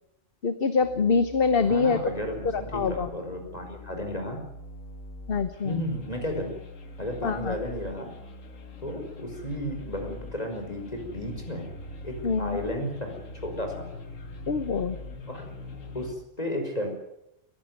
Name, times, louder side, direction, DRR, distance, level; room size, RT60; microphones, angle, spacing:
voice 1, 0.4-2.0 2.5-3.1 5.3-5.8 7.2-7.5 12.2-12.6 14.5-15.0, left 5 dB, 50° left, 11 dB, 1.2 m, -25 dB
sound 1, 0.8-16.2, left 2 dB, 90° left, 2.0 m, -43 dB
voice 2, 1.6-4.4 5.6-6.5 7.0-8.1 8.8-11.7 12.0-13.1 13.4-13.9 15.3-15.5 15.9-16.9, left 1 dB, 30° left, 3 dB, 5.5 m, -33 dB
21.5 x 16.0 x 9.5 m, 0.84 s
omnidirectional pair, 1.3 m